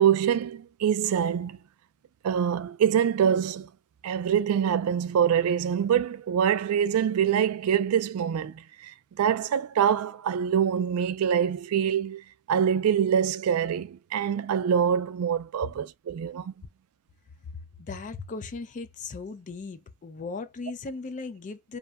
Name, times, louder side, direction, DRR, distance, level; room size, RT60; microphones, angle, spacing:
voice 1, 0.0-1.6 2.2-3.7 4.0-12.2 12.5-16.5, right 8 dB, 90° right, 0.3 m, -25 dB
voice 2, 17.8-21.8, left 4 dB, 35° left, 0.4 m, -37 dB
2.7 x 2.1 x 2.3 m
head